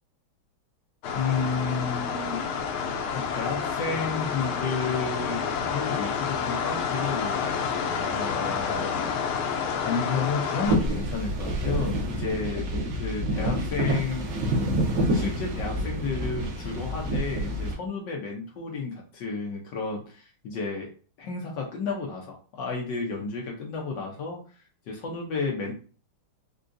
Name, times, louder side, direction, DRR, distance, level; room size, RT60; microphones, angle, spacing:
sound 1, 1.0-10.8, left 6 dB, 90° left, 1.5 m, -29 dB
voice 1, 1.1-2.4 3.1-7.5 8.1-9.1 9.8-12.6 12.9-14.3 15.1-20.9 21.2-25.7, left 4 dB, 65° left, 0 dB, 1.2 m, -32 dB
sound 2, 10.6-17.7, right 1 dB, 90° right, 1.7 m, -28 dB
4.6 x 2.3 x 2.5 m, 0.38 s
omnidirectional pair, 2.3 m